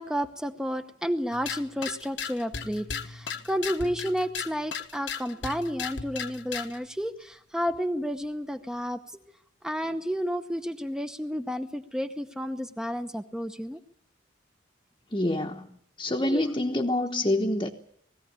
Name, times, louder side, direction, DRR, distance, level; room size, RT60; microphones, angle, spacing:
voice 1, 0.0-9.0 9.6-13.8 16.2-16.4, equal, 5° right, 0.8 m, -31 dB
sound 1, 1.3-6.8, left 6 dB, 60° left, 1.2 m, -36 dB
voice 2, 15.1-15.7 16.0-17.7, left 1 dB, 25° left, 1.1 m, -26 dB
20.5 x 15.5 x 9.7 m
head